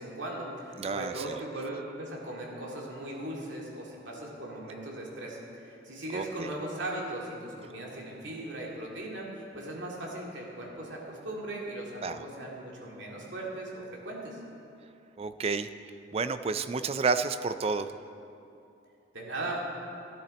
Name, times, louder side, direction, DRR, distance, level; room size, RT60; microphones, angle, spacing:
voice 1, 0.0-14.4 19.1-19.6, right 1 dB, 80° right, -3 dB, 2.4 m, -38 dB
voice 2, 0.8-1.2 6.1-6.5 12.0-12.2 15.2-15.7 16.1-17.9, right 4 dB, 35° right, 11 dB, 0.4 m, -30 dB
13.0 x 11.0 x 4.2 m, 2.7 s
head